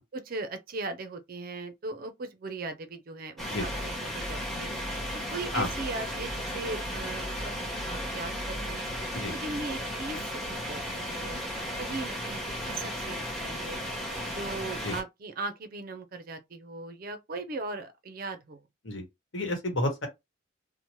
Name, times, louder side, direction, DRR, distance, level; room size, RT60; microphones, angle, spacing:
voice 1, 0.1-4.7 5.3-7.6 7.9-8.9 9.3-13.8 14.3-18.6, right 3 dB, 45° right, 0.4 m, -38 dB
sound 1, 3.4-15.0, equal, ahead, 0.8 m, -35 dB
voice 2, 19.3-20.1, left 1 dB, 65° left, 1.1 m, -30 dB
2.9 x 2.1 x 3.0 m
head